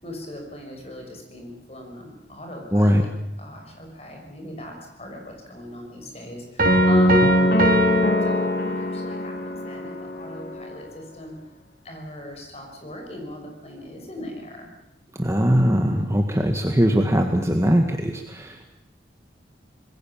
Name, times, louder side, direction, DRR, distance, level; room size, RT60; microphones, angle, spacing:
voice 1, 0.0-3.1 3.4-7.3 8.2-11.3 11.8-14.7, equal, 35° left, 2 dB, 6.1 m, -36 dB
voice 2, 2.7-3.0 15.2-18.7, equal, 15° right, 4 dB, 1.7 m, -20 dB
sound 1, 6.6-10.8, left 1 dB, 50° left, 2.1 m, -22 dB
sound 2, 6.6-9.1, right 2 dB, 50° right, 2.6 m, -24 dB
26.5 x 21.0 x 7.3 m, 0.91 s
head